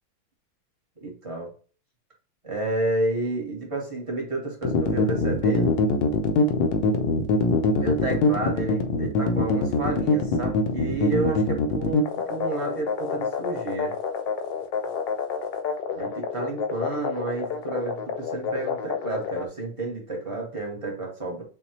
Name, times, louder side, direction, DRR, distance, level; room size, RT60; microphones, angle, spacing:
voice 1, 1.0-1.5 2.4-5.7 7.7-14.0 16.0-21.4, right 2 dB, 20° right, -2 dB, 1.1 m, -30 dB
sound 1, 4.6-19.4, left 4 dB, 65° left, 1.2 m, -24 dB
6.7 x 2.7 x 2.9 m, 0.39 s
omnidirectional pair, 2.4 m